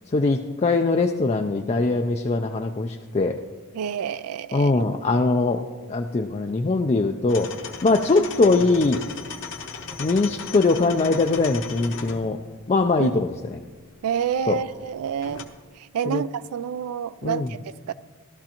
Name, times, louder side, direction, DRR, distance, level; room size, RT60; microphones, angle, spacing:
voice 1, 0.1-3.4 4.5-7.5 7.8-9.0 10.0-12.4 12.7-13.3 14.5-14.6 16.1-16.2 17.2-17.5, left 3 dB, 30° left, 0.4 m, -21 dB
voice 2, 3.7-5.0 13.0-13.2 14.0-15.5 15.8-17.9, right 8 dB, 80° right, 0.4 m, -29 dB
sound 1, 7.3-15.4, left 5 dB, 55° left, 0.9 m, -38 dB
15.5 x 12.5 x 2.9 m
head